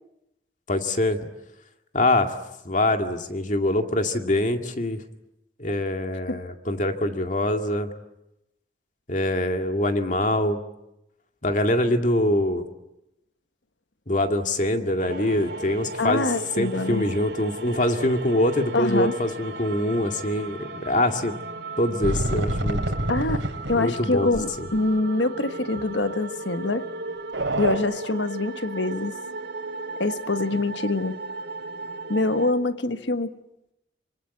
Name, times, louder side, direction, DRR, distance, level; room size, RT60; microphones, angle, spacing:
voice 1, 0.7-1.2 1.9-2.3 2.6-5.0 5.6-7.9 9.1-10.6 11.4-12.6 14.1-21.4 21.8-22.8 23.7-24.7, left 1 dB, 40° left, 5 dB, 2.2 m, -24 dB
sound 1, 15.0-32.5, right 3 dB, 65° right, 3.1 m, -36 dB
voice 2, 16.0-17.1 18.7-19.2 23.1-23.4 23.7-26.9 27.6-29.2 30.0-31.2 32.1-33.3, left 2 dB, 75° left, 10 dB, 1.4 m, -25 dB
sound 2, 22.0-24.0 24.3-24.4 24.7-24.8 25.7-25.8 27.3-27.8, right 1 dB, 85° right, 3.4 m, -26 dB
26.0 x 24.5 x 8.4 m, 0.89 s
head